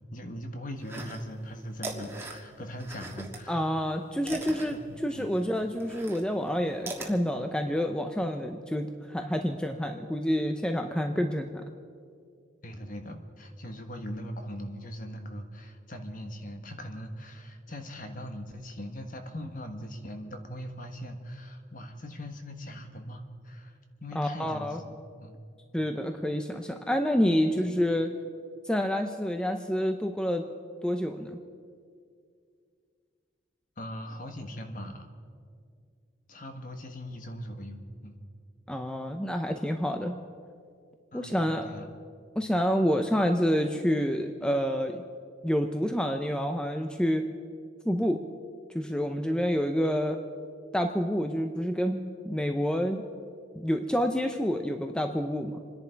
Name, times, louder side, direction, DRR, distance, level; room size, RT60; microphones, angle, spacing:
voice 1, 0.1-3.7 4.7-5.3 12.6-25.4 33.8-35.1 36.3-38.2 41.1-41.9, equal, 45° left, 5 dB, 1.4 m, -40 dB
sound 1, 0.8-1.5 1.7-3.4 3.7-7.1, right 2 dB, 15° right, 1.5 m, -39 dB
voice 2, 3.5-11.6 24.1-24.8 25.7-28.1 28.6-30.4 30.8-31.4 38.7-40.2 41.1-41.7 42.4-45.0 45.4-47.2 47.8-48.2 48.7-50.2 50.7-53.0 53.5-55.6, equal, 5° left, 5 dB, 0.6 m, -28 dB
28.0 x 10.5 x 4.6 m, 2.2 s
head